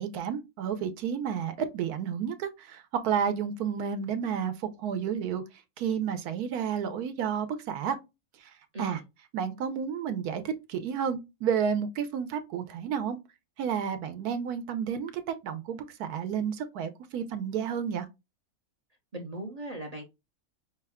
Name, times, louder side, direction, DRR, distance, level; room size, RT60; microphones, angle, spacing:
voice 1, 0.0-5.4 5.8-8.0 8.4-8.5 8.8-9.0 9.3-13.2 13.6-18.1, right 7 dB, 80° right, 1.2 m, -31 dB
voice 2, 19.1-20.0, right 1 dB, 40° right, 0.5 m, -38 dB
5.5 x 2.2 x 3.4 m
omnidirectional pair, 1.6 m